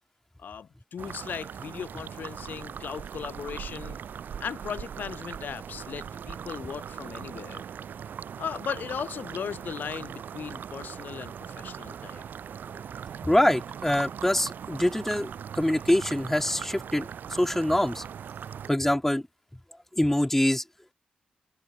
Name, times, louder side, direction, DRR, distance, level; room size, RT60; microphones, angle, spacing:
voice 1, 0.4-4.0 4.4-7.6 8.4-12.2, left 7 dB, 65° left, 5.2 m, -37 dB
sound 1, 1.0-18.7, right 8 dB, 70° right, 2.8 m, -40 dB
voice 2, 13.2-18.0 18.7-19.2 19.9-20.6, left 1 dB, 10° left, 3.0 m, -25 dB
supercardioid pair, 45°, 3 cm